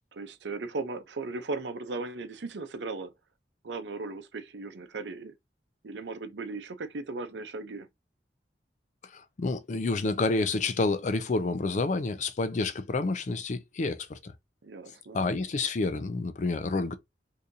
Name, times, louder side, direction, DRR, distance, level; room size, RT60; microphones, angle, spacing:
voice 1, 0.1-3.1 3.6-5.3 5.8-7.9 14.6-15.2, right 3 dB, 85° right, 0.6 m, -37 dB
voice 2, 9.1-14.3 15.1-16.9, left 3 dB, 45° left, 0.4 m, -29 dB
3.7 x 2.8 x 2.6 m
head